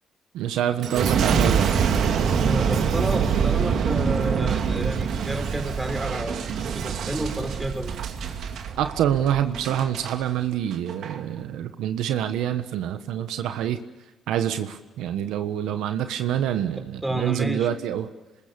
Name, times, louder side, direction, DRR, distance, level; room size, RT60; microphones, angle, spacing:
voice 1, 0.3-1.9 8.7-13.8 14.3-18.1, right 10 dB, 90° right, 9 dB, 1.3 m, -26 dB
Boom, 0.8-10.2 10.7-11.2, right 6 dB, 70° right, 2.6 m, -25 dB
voice 2, 2.4-8.0 17.0-17.7, right 1 dB, 10° right, 6 dB, 4.1 m, -30 dB
26.5 x 21.0 x 7.0 m, 1.1 s
cardioid pair, 90°, 0 cm